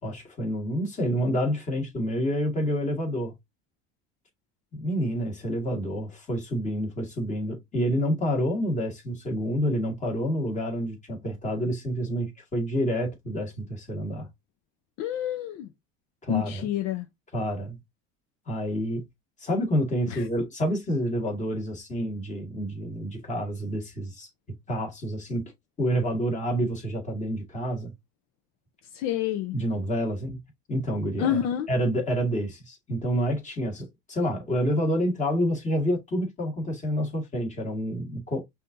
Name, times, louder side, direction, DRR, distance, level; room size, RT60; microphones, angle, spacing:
voice 1, 0.0-3.3 4.7-14.3 16.2-16.6 17.3-17.8 18.5-19.0 19.4-24.3 24.7-25.5 25.8-27.9 29.5-30.4 30.7-31.4 31.7-38.4, equal, 25° left, 2.0 m, -28 dB
voice 2, 15.0-15.7 16.3-17.1 20.1-20.3 28.9-29.5 31.2-31.7, left 11 dB, 60° left, 0.7 m, -28 dB
5.6 x 2.8 x 2.6 m
supercardioid pair, 130°, 32 cm